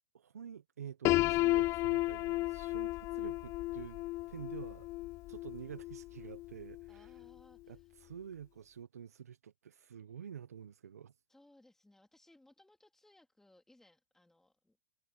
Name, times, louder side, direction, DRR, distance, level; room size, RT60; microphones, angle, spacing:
voice 1, 0.1-4.0 4.3-4.9 5.3-7.2 7.7-11.2, right 8 dB, 85° right, 0.8 m, -48 dB
Piano, 1.0-6.9, left 19 dB, 35° left, 0.3 m, -33 dB
voice 2, 6.9-7.9 11.3-14.8, left 1 dB, 5° left, 3.2 m, -65 dB
hypercardioid pair, 110°, 8 cm